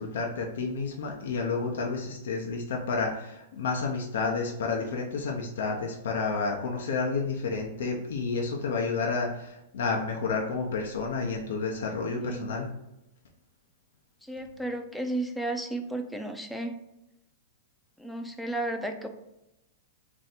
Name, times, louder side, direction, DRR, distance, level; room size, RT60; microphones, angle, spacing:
voice 1, 0.0-12.7, left 4 dB, 80° left, 0 dB, 0.5 m, -30 dB
voice 2, 12.2-12.5 14.2-16.8 18.0-19.1, right 2 dB, ahead, 5 dB, 0.3 m, -33 dB
3.2 x 2.6 x 4.1 m, 0.88 s
supercardioid pair, 155°, 0 cm